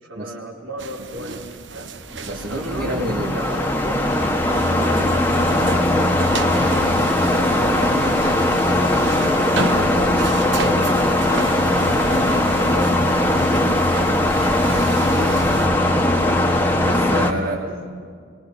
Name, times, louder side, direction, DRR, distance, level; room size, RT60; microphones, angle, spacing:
voice 1, 0.0-1.9 2.5-6.9 7.4-8.5 8.8-11.5 12.1-14.4 15.1-15.4 17.5-17.8, right 1 dB, 80° right, -2 dB, 4.6 m, -34 dB
sound 1, 0.8-15.7, right 4 dB, 65° right, 1.0 m, -33 dB
sound 2, 2.2-17.3, left 1 dB, 10° left, 1.5 m, -19 dB
voice 2, 2.2-3.4 16.8-17.6, right 1 dB, 45° right, -3 dB, 2.3 m, -28 dB
29.5 x 23.5 x 7.1 m, 2.1 s
head